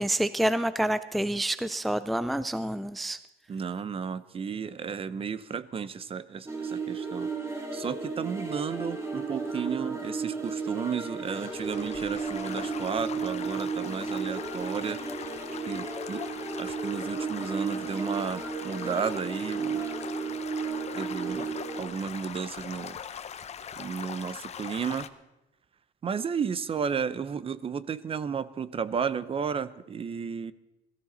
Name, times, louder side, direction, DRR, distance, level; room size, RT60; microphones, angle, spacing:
voice 1, 0.0-3.2, right 1 dB, ahead, 14 dB, 0.4 m, -28 dB
voice 2, 3.5-7.3 7.7-15.4 15.7-16.2 16.6-19.9 20.9-23.0 23.8-25.1 26.0-30.5, right 6 dB, 35° right, 16 dB, 0.7 m, -33 dB
sound 1, 6.5-21.8, right 4 dB, 15° right, 2.9 m, -34 dB
Stream / Gurgling / Trickle dribble, 11.3-25.1, left 8 dB, 40° left, 0.8 m, -41 dB
21.5 x 14.0 x 4.0 m, 0.95 s
cardioid pair, 110°, 17 cm